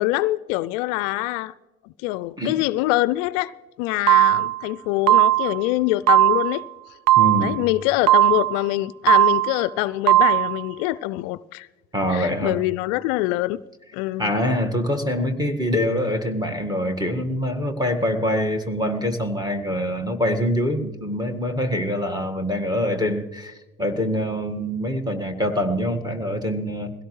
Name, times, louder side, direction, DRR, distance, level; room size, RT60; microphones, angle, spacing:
voice 1, 0.0-1.5 1.8-3.5 3.8-6.6 7.4-11.7 12.1-13.6 13.9-14.4, left 17 dB, 65° left, 0.5 m, -24 dB
sound 1, 4.1-4.6 5.1-5.6 6.1-6.6 7.1-7.6 8.1-8.6 9.1-9.6 10.1-10.6, right 16 dB, 75° right, 0.7 m, -17 dB
voice 2, 7.2-7.7 11.9-12.6 14.2-26.9, equal, 10° right, 1.8 m, -24 dB
22.0 x 16.5 x 3.2 m
hypercardioid pair, 70°, 40 cm